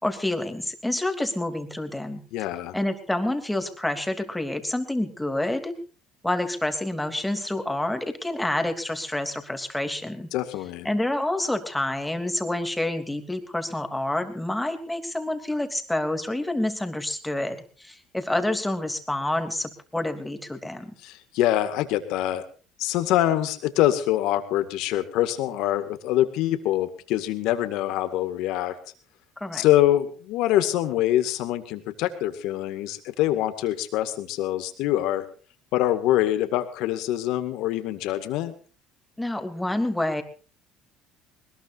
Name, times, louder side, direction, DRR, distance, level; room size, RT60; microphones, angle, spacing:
voice 1, 0.0-2.2 2.7-5.8 6.2-10.3 10.8-20.9 29.4-29.6 39.2-40.2, left 1 dB, 5° left, 7 dB, 3.1 m, -28 dB
voice 2, 2.3-2.7 10.3-10.9 21.0-22.4 22.8-28.8 29.5-35.3 35.7-38.5, left 13 dB, 75° left, 10 dB, 2.1 m, -24 dB
21.0 x 20.0 x 2.7 m, 0.38 s
supercardioid pair, 80°, 0 cm